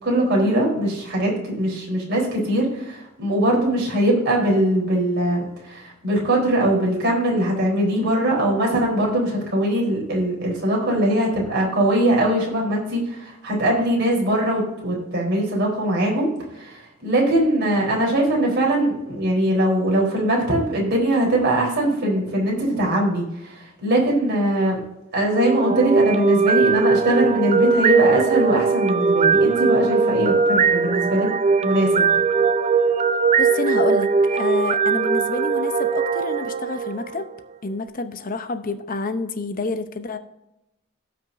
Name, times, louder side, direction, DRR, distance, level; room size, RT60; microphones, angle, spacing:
voice 1, 0.0-16.3 16.6-24.8 25.1-31.3 31.6-32.1, right 1 dB, 55° right, -2 dB, 3.8 m, -21 dB
sound 1, 25.2-37.4, right 5 dB, 30° right, 0.4 m, -20 dB
voice 2, 33.4-37.3 37.6-40.2, left 3 dB, 40° left, 9 dB, 0.8 m, -28 dB
17.5 x 6.0 x 2.6 m, 0.90 s
head